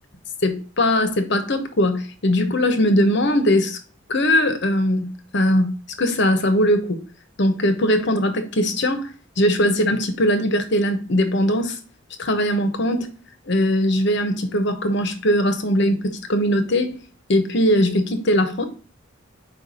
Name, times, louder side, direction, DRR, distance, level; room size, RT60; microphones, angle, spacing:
voice 1, 0.4-3.8 4.1-7.0 7.4-9.1 9.4-11.8 12.2-13.1 13.5-17.0 17.3-18.7, equal, 60° left, 1.0 m, -20 dB
4.7 x 4.7 x 5.4 m
head